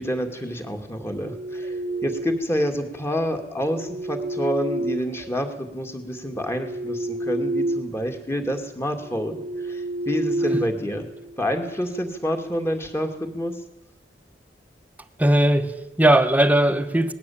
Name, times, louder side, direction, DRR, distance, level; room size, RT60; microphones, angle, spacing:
voice 1, 0.0-1.7 2.0-9.4 9.7-11.0 11.4-13.6, equal, 15° left, 5 dB, 2.4 m, -28 dB
sound 1, 1.0-2.5 3.5-5.6 6.1-8.0 8.3-8.5 9.0-11.4, right 1 dB, 35° right, 1.0 m, -30 dB
voice 2, 15.2-17.1, right 1 dB, 10° right, 9 dB, 1.3 m, -18 dB
20.0 x 16.5 x 8.7 m, 0.93 s
head